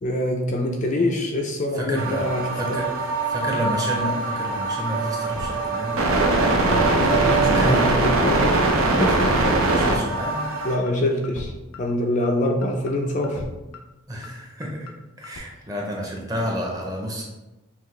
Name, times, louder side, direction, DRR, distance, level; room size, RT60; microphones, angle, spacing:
voice 1, 0.0-2.8 6.7-8.5 9.0-9.3 10.6-13.4, left 1 dB, 35° left, 2 dB, 0.4 m, -25 dB
voice 2, 1.7-2.9 3.3-6.0 7.5-8.0 9.6-10.5 14.1-17.2, equal, 15° right, -2 dB, 0.7 m, -30 dB
sound 1, 2.0-10.8, right 2 dB, 80° right, 0.6 m, -22 dB
sound 2, 3.7-3.8 4.2-4.3 4.6-4.9 5.2-5.5 5.7-5.8 6.2-6.3 6.6-6.9 7.2-7.5 7.7-7.8 8.2-8.3 8.6-8.9 9.2-9.5 9.7-9.8 10.2-10.3 10.6-10.9 11.2-11.5 11.7-11.8 12.2-12.3 12.6-12.9 13.2-13.5 13.7-13.8 14.2-14.3 14.6-14.9 15.2-15.4, left 4 dB, 90° left, 0.5 m, -37 dB
5.7 x 2.4 x 3.2 m, 1.0 s
head